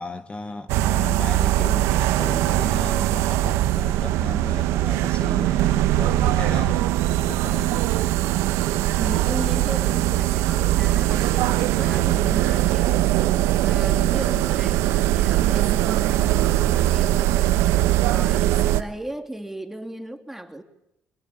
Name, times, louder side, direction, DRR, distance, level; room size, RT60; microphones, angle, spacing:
voice 1, 0.0-6.9 7.3-7.9, left 3 dB, 25° left, 1.6 m, -35 dB
sound 1, 0.7-18.8, right 14 dB, 90° right, 1.1 m, -21 dB
voice 2, 9.0-20.6, right 1 dB, 5° right, 3.2 m, -36 dB
24.5 x 22.0 x 8.7 m
cardioid pair, 85°, 5 cm